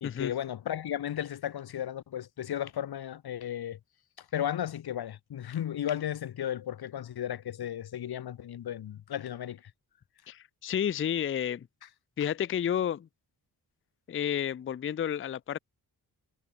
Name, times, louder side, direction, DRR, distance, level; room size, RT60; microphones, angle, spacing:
voice 1, 0.0-3.8 4.2-9.6, left 10 dB, 75° left, 0.9 m, -34 dB
voice 2, 10.3-11.7 12.2-13.1 14.1-15.6, left 9 dB, 35° left, 0.4 m, -31 dB
wide cardioid pair, 130°, 39 cm